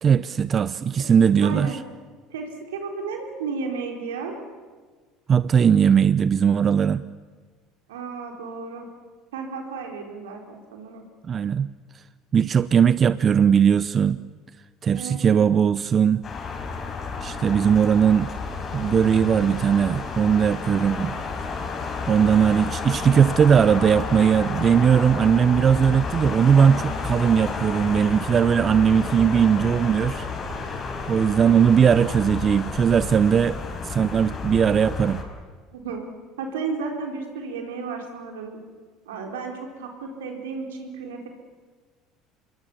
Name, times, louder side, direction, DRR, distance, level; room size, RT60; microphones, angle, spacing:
voice 1, 0.0-1.7 5.3-7.0 11.3-11.7 12.3-14.2 14.8-16.2 17.2-18.3 18.7-21.2 22.1-30.3 30.7-30.8 31.1-33.6 33.8-35.3, right 7 dB, 40° right, 16 dB, 0.6 m, -19 dB
voice 2, 1.4-1.8 2.3-4.4 7.9-8.9 9.3-11.0 14.9-15.5 35.7-36.1 36.4-38.6 39.1-41.3, right 5 dB, 85° right, 3 dB, 4.1 m, -33 dB
sound 1, 16.2-35.2, left 4 dB, 40° left, 5.5 m, -31 dB
26.5 x 22.0 x 7.2 m, 1.5 s
hypercardioid pair, 75°, 0 cm